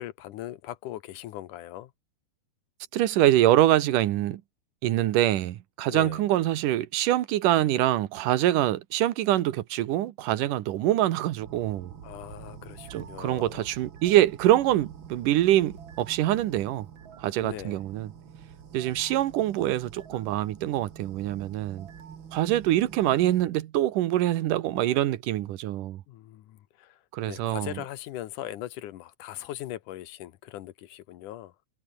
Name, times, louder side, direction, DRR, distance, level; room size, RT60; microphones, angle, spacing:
voice 1, 0.0-1.9 5.9-6.2 12.0-13.7 17.4-17.8 26.1-27.0 27.2-31.5, left 13 dB, 80° left, 2.6 m, -40 dB
voice 2, 2.9-4.4 4.8-11.9 12.9-16.9 17.2-18.1 18.7-21.9 22.3-26.0 27.1-27.8, right 13 dB, 80° right, 2.7 m, -24 dB
sound 1, 11.4-23.5, right 7 dB, 45° right, 2.2 m, -46 dB
omnidirectional pair, 3.7 m